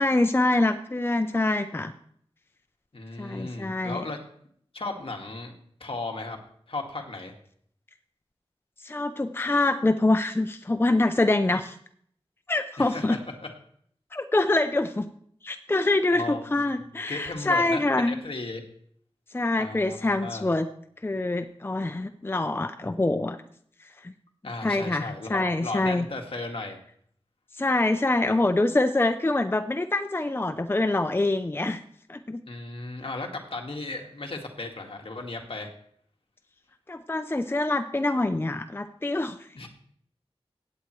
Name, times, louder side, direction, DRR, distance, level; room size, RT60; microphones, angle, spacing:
voice 1, 0.0-1.9 3.2-4.0 8.8-11.8 12.5-13.2 14.1-15.1 15.4-18.2 19.3-20.7 21.0-23.4 24.0-24.1 24.6-26.1 27.6-31.8 32.1-32.4 36.9-39.7, left 2 dB, 20° left, 8 dB, 0.5 m, -25 dB
voice 2, 2.9-4.2 4.7-5.5 5.8-6.4 6.7-7.3 12.8-13.5 16.1-16.6 17.1-18.6 19.6-20.5 24.4-26.8 32.5-35.7 39.5-39.7, left 2 dB, 65° left, 2 dB, 1.8 m, -35 dB
16.5 x 8.8 x 3.1 m, 0.64 s
wide cardioid pair, 70°, 10 cm